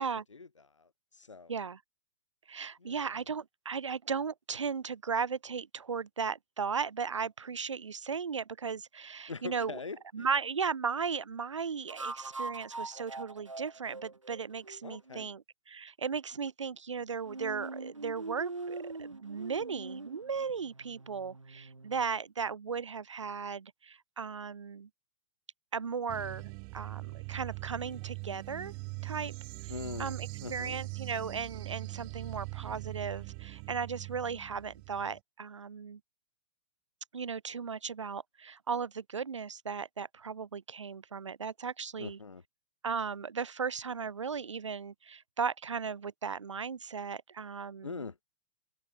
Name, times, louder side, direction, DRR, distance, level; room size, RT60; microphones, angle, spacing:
voice 1, 0.3-1.6 2.8-3.2 9.3-10.3 14.8-15.3 29.7-30.8 42.0-42.4 47.8-48.2, left 4 dB, 75° left, 5.5 m, -43 dB
voice 2, 1.5-1.8 2.5-9.8 10.1-24.9 25.7-28.7 29.0-29.3 30.0-36.0 37.1-42.2 42.8-48.0, right 6 dB, 70° right, 1.0 m, -36 dB
sound 1, 11.9-15.3 17.2-22.1, right 3 dB, 90° right, 0.6 m, -43 dB
sound 2, 26.1-35.2, right 40 dB or more, 30° right, 0.9 m, -42 dB
figure-of-eight pair, 110°, 16 cm